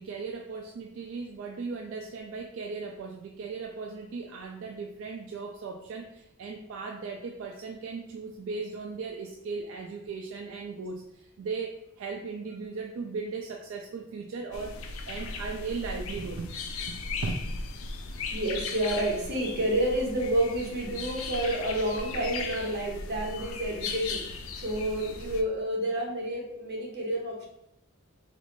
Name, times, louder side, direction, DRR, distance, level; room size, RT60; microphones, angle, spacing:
voice 1, 0.0-14.8 15.1-16.5 16.9-17.5, right 4 dB, 75° right, 2 dB, 0.3 m, -37 dB
sound 1, 14.5-25.4, left 4 dB, 80° left, 0.4 m, -37 dB
voice 2, 18.3-24.2 24.5-27.5, right 1 dB, 55° right, -1 dB, 0.8 m, -29 dB
3.1 x 2.5 x 3.0 m, 0.83 s
head